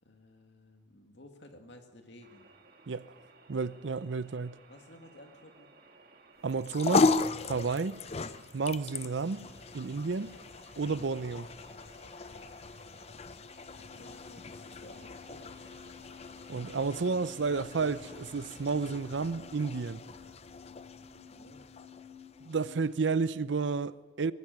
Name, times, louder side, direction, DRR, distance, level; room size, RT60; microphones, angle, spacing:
voice 1, 0.0-2.5 4.7-5.7 13.8-15.7 21.0-21.7, left 1 dB, 65° left, 2.3 m, -55 dB
sound 1, 2.2-18.9, right 3 dB, 50° right, 2.0 m, -59 dB
voice 2, 3.5-4.6 6.4-7.2 7.5-8.0 8.5-9.5 9.7-10.3 10.8-11.5 16.5-20.0 22.4-24.3, right 4 dB, 70° right, 0.6 m, -31 dB
sound 2, 6.5-23.0, left 4 dB, 35° left, 0.5 m, -36 dB
sound 3, 13.2-22.8, left 9 dB, 15° right, 4.0 m, -54 dB
21.5 x 13.5 x 9.3 m
head